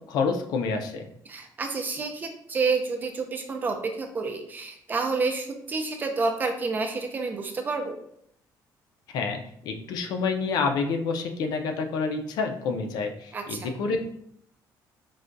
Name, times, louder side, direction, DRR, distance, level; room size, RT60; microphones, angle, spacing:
voice 1, 0.1-1.1 9.1-14.1, left 4 dB, 65° left, 5 dB, 0.4 m, -28 dB
voice 2, 1.3-8.0 13.3-13.7, right 4 dB, 25° right, 5 dB, 0.4 m, -29 dB
4.7 x 2.2 x 2.5 m, 0.69 s
cardioid pair, 155°, 7 cm